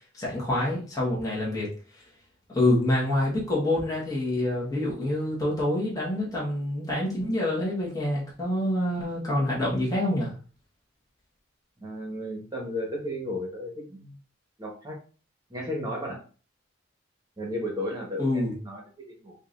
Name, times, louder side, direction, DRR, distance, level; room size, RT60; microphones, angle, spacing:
voice 1, 0.1-1.7 2.5-10.3 18.2-18.6, left 1 dB, 15° left, -6 dB, 1.4 m, -26 dB
voice 2, 11.8-14.1 14.6-15.0 15.5-16.2 17.4-19.3, left 1 dB, 20° right, -2 dB, 1.2 m, -34 dB
5.2 x 2.6 x 2.6 m, 0.37 s
head